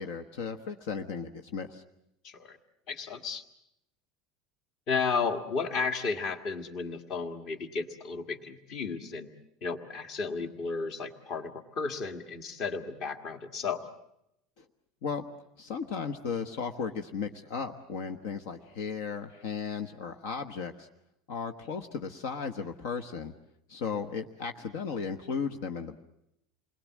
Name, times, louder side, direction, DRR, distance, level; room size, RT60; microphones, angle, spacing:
voice 1, 0.0-1.8 14.6-14.7 15.0-15.2 15.6-20.9 21.3-23.3 23.7-26.0, left 6 dB, 55° left, 6 dB, 1.3 m, -35 dB
voice 2, 2.2-2.6 2.9-3.4 4.9-9.3 9.6-13.8, left 5 dB, 35° left, 8 dB, 1.8 m, -33 dB
28.5 x 22.0 x 7.4 m, 0.80 s
cardioid pair, 180°, 0 cm